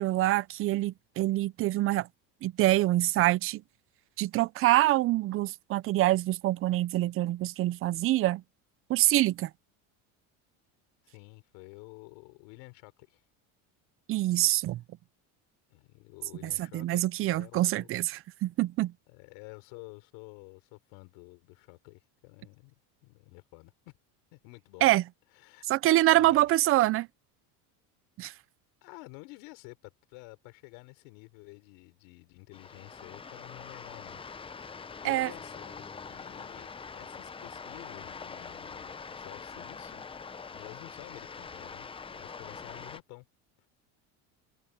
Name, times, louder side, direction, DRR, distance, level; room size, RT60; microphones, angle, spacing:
voice 1, 0.0-2.1 2.4-3.6 4.2-8.4 8.9-9.5 14.1-14.8 16.4-18.9 24.8-25.0 25.7-27.1 28.2-28.3 35.0-35.3, right 16 dB, 35° right, 0.4 m, -25 dB
voice 2, 11.0-13.2 15.7-17.9 19.1-22.7 23.0-23.9 24.3-24.9 25.3-25.6 26.1-26.6 28.8-40.0 40.5-43.2 43.6-43.7, left 28 dB, 80° left, 4.7 m, -50 dB
sound 1, 32.5-43.0, left 5 dB, 15° left, 0.6 m, -44 dB
cardioid pair, 130°, 39 cm